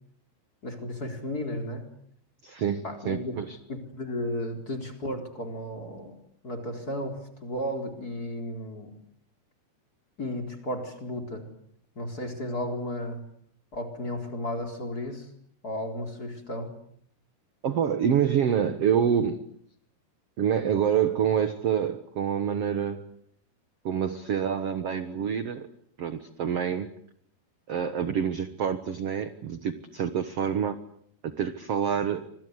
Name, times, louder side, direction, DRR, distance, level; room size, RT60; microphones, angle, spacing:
voice 1, 0.6-1.9 2.8-3.4 3.7-6.1 6.4-8.9 10.2-11.5 12.0-13.2 13.7-15.3 15.6-16.7, left 1 dB, 20° left, 5 dB, 4.1 m, -34 dB
voice 2, 2.4-3.6 17.6-19.4 20.4-23.1 23.8-25.7 26.0-26.9 27.7-30.8 31.2-32.2, right 8 dB, 60° right, 10 dB, 1.5 m, -27 dB
27.5 x 26.0 x 8.1 m, 0.65 s
omnidirectional pair, 4.8 m